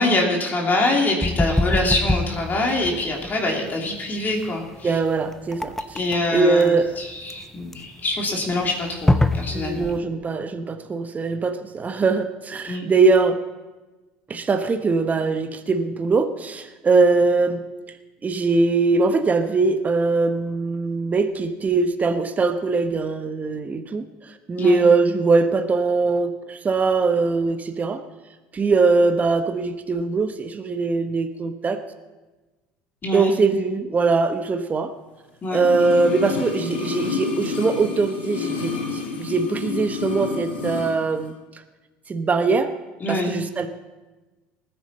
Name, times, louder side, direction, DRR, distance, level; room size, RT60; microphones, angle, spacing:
voice 1, 0.0-4.9 5.9-9.9 12.7-12.9 24.6-24.8 33.0-33.3 35.4-35.7 43.0-43.3, left 2 dB, 35° left, 0 dB, 3.0 m, -24 dB
sound 1, 1.2-10.0, left 2 dB, 5° left, 0.8 m, -25 dB
voice 2, 4.8-6.0 6.3-6.9 9.5-13.4 14.3-17.6 18.2-28.0 28.5-31.8 33.1-34.9 35.5-41.3 42.1-42.7 43.1-43.7, right 4 dB, 30° right, 8 dB, 1.0 m, -21 dB
sound 2, 35.5-41.0 41.2-41.3, left 4 dB, 90° left, 1.7 m, -29 dB
19.5 x 9.1 x 4.2 m, 1.2 s
hypercardioid pair, 70°, 5 cm